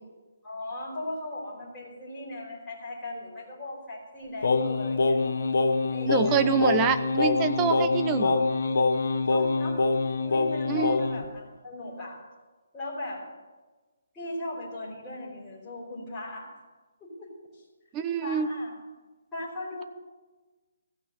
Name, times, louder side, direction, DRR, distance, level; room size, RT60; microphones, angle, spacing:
voice 1, 0.4-5.2 5.9-6.7 8.1-8.3 9.3-9.8 10.2-12.2 12.7-13.2 14.1-16.6 17.0-17.6 18.2-18.7 19.3-19.8, left 1 dB, 5° left, -8 dB, 3.5 m, -38 dB
Singing, 4.4-11.3, left 3 dB, 65° left, 0.9 m, -25 dB
voice 2, 6.1-8.3 10.7-10.9 17.9-18.5, right 8 dB, 15° right, 10 dB, 0.5 m, -26 dB
15.0 x 6.1 x 9.7 m, 1.3 s
hypercardioid pair, 170°, 0 cm